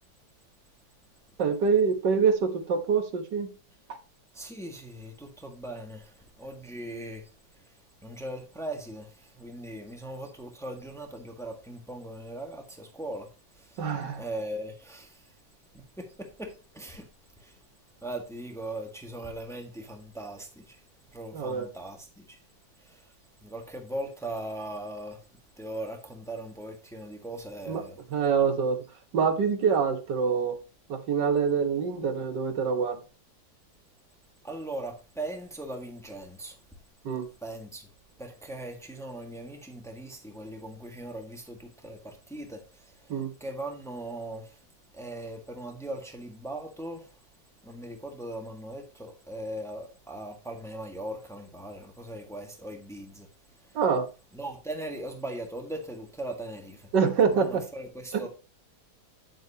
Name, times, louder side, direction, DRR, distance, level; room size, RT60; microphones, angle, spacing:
voice 1, 1.4-3.5 13.8-14.2 21.3-21.7 27.7-27.8 28.1-28.8 29.1-30.6 30.9-33.0 37.1-37.3 43.1-43.3 53.8-54.1 56.9-57.6 58.1-58.2, right 6 dB, 65° right, 1.8 m, -25 dB
voice 2, 4.3-7.3 7.6-13.3 13.5-13.8 14.1-15.3 15.7-17.1 17.4-17.6 18.0-20.8 21.1-22.4 22.8-23.1 23.4-25.2 25.6-28.0 34.4-36.6 37.4-37.9 38.2-44.6 44.9-47.1 47.6-53.3 53.6-53.8 54.3-56.9 57.3-58.3, right 1 dB, ahead, 1.3 m, -39 dB
9.0 x 7.8 x 2.8 m
omnidirectional pair, 2.1 m